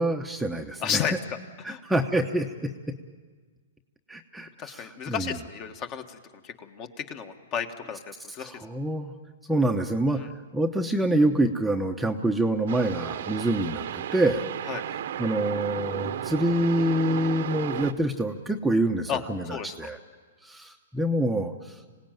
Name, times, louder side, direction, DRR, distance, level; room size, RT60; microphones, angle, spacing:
voice 1, 0.0-1.0 1.6-2.7 4.1-5.3 8.4-9.1 9.5-14.5 15.2-20.0 20.4-21.8, right 1 dB, 5° right, 3 dB, 0.9 m, -26 dB
voice 2, 0.8-1.4 1.7-1.8 4.6-8.0 8.3-8.6 10.1-10.3 14.7-14.8 19.1-19.2 19.5-19.9, left 8 dB, 30° left, 7 dB, 1.6 m, -33 dB
sound 1, 12.7-17.9, right 10 dB, 65° right, 1.1 m, -34 dB
26.5 x 17.5 x 9.2 m, 1.5 s
hypercardioid pair, 145°, 0 cm